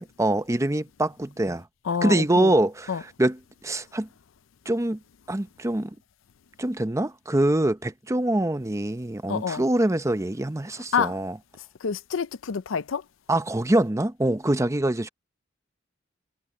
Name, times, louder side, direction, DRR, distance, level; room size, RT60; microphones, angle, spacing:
voice 1, 0.0-1.7 2.0-4.1 4.7-5.0 5.3-6.0 6.6-11.4 13.3-15.1, right 1 dB, 15° right, 0.7 m, -24 dB
voice 2, 1.9-2.5 2.9-3.0 9.3-9.6 10.9-11.1 11.8-13.0, left 6 dB, 75° left, 0.5 m, -27 dB
head